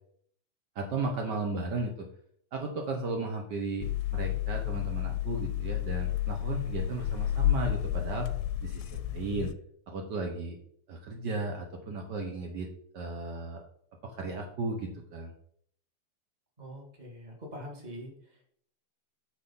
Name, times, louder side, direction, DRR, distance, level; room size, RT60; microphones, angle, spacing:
voice 1, 0.7-2.1 2.5-8.3 8.6-9.5 9.9-10.6 10.9-12.7 12.9-13.6 14.0-15.3, right 3 dB, 90° right, 2 dB, 0.9 m, -35 dB
sound 1, 3.8-9.5, left 13 dB, 80° left, 1.7 m, -31 dB
voice 2, 16.6-18.4, equal, 20° right, 0 dB, 1.3 m, -44 dB
8.0 x 4.6 x 5.5 m, 0.65 s
omnidirectional pair, 3.4 m